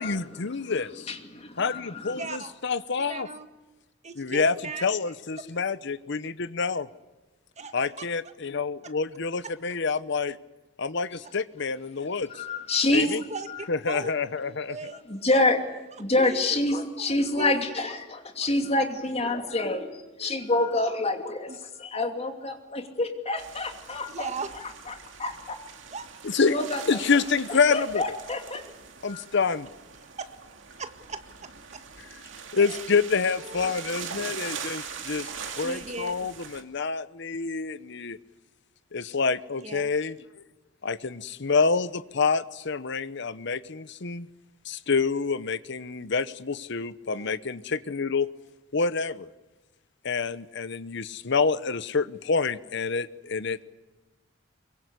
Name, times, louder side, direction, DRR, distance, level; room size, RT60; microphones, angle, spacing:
voice 1, 0.0-1.2 1.6-3.3 4.2-4.5 4.8-6.9 7.7-10.4 10.8-12.4 12.9-13.2 13.7-14.9 26.2-26.6 26.9-28.0 29.0-29.7 32.5-35.3 35.6-38.2 38.9-40.2 40.8-44.3 44.6-48.3 48.7-49.3 50.0-53.6, left 4 dB, 65° left, 14 dB, 0.9 m, -27 dB
voice 2, 1.1-2.2 12.4-13.1 15.1-15.6 16.0-21.5 21.8-24.3 24.9-25.0 25.2-25.6 26.4-27.0 27.7-28.6 29.1-29.2, left 2 dB, 30° left, 5 dB, 2.7 m, -27 dB
voice 3, 2.1-2.5 3.0-3.5 4.0-4.9 5.4-5.5 7.6-8.1 8.8-8.9 9.4-9.5 12.9-13.5 13.9-14.1 14.7-15.0 15.3-15.4 16.2-16.4 17.0-17.9 19.3-19.5 21.5-21.6 24.1-24.5 25.9-26.1 30.8-31.8 32.5-32.9 33.4-33.7 35.6-36.1 39.6-39.8 47.1-47.3, right 4 dB, 35° right, 8 dB, 1.8 m, -38 dB
sound 1, 23.4-36.6, right 6 dB, 70° right, 2.6 m, -41 dB
24.0 x 23.0 x 8.2 m, 1.1 s
head